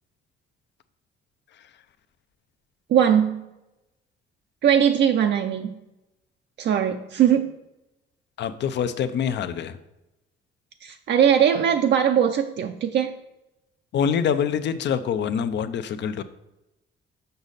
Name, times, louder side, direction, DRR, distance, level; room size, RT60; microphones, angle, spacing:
voice 1, 2.9-3.4 4.6-5.7 6.6-7.5 10.8-13.1, right 9 dB, 60° right, 6 dB, 0.6 m, -20 dB
voice 2, 8.4-9.8 13.9-16.2, left 7 dB, 65° left, 11 dB, 0.6 m, -25 dB
6.8 x 5.1 x 4.0 m, 0.95 s
cardioid pair, 90°, 20 cm